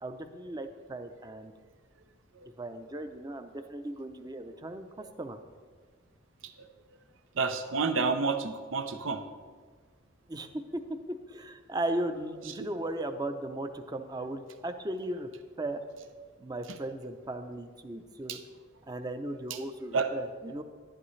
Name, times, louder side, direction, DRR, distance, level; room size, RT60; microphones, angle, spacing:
voice 1, 0.0-1.5 2.6-5.4 10.3-10.8 11.3-15.3 15.6-15.8 16.4-18.4 18.9-20.6, right 1 dB, 20° right, 8 dB, 0.6 m, -36 dB
voice 2, 7.3-9.2 12.6-12.7 16.7-16.8 18.3-18.4 19.5-19.6 19.9-20.1, right 4 dB, 90° right, 8 dB, 0.7 m, -30 dB
11.0 x 11.0 x 3.2 m, 1.6 s
head